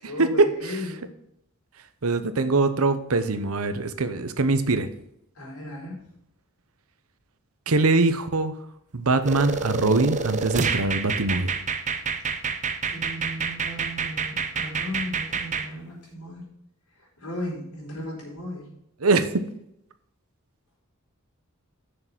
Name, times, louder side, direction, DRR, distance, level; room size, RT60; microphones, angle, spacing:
voice 1, 0.0-1.1 5.3-6.1 12.8-16.4 17.2-18.7, left 1 dB, 90° left, -3 dB, 4.5 m, -35 dB
voice 2, 2.0-4.9 7.7-8.5 8.9-11.5 19.0-19.3, right 3 dB, 75° right, 11 dB, 0.9 m, -22 dB
sound 1, 9.2-15.7, right 5 dB, 35° right, 0.7 m, -28 dB
6.8 x 6.7 x 7.3 m, 0.78 s
head